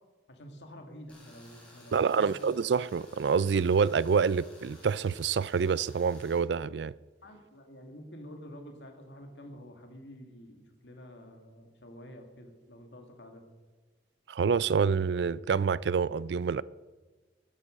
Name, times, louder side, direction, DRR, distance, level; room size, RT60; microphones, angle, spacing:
voice 1, 0.3-2.3 7.2-13.4, equal, 85° left, 2.2 m, -49 dB
Tools, 1.1-6.4, left 1 dB, 5° left, 4.5 m, -56 dB
voice 2, 1.9-6.9 14.3-16.6, right 6 dB, 75° right, 0.4 m, -27 dB
14.5 x 11.0 x 5.2 m
head